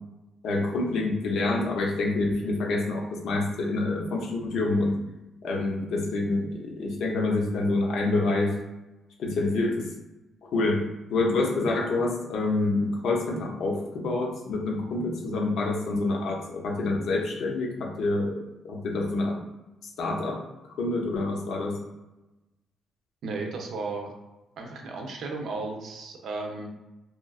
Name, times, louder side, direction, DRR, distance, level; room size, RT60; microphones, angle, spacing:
voice 1, 0.4-5.0 5.4-8.5 9.2-9.9 10.4-19.4 20.0-20.4 20.8-21.8, left 2 dB, 75° left, 0 dB, 0.6 m, -27 dB
voice 2, 23.2-24.1 24.6-26.7, right 3 dB, 70° right, 2 dB, 0.5 m, -34 dB
3.0 x 2.4 x 2.3 m, 1.0 s
cardioid pair, 90°, 0 cm